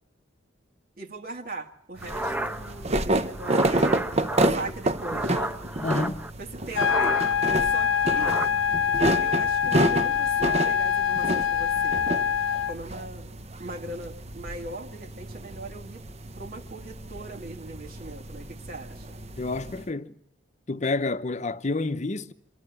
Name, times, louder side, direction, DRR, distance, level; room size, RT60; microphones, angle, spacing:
voice 1, 1.0-3.9 4.5-5.5 6.4-7.2 7.6-8.4 9.2-12.0 12.7-16.0 16.4-19.1, right 2 dB, 50° right, 1.9 m, -40 dB
sound 1, 2.0-6.3 6.7-7.5 7.8-8.5, right 1 dB, 10° right, 1.1 m, -32 dB
sound 2, 2.0-19.8, right 1 dB, 35° right, 0.9 m, -30 dB
voice 2, 5.8-6.3 19.4-20.1 20.7-22.3, left 3 dB, 35° left, 0.8 m, -29 dB
sound 3, 6.8-12.7, left 8 dB, 85° left, 0.8 m, -24 dB
25.0 x 13.0 x 8.1 m
head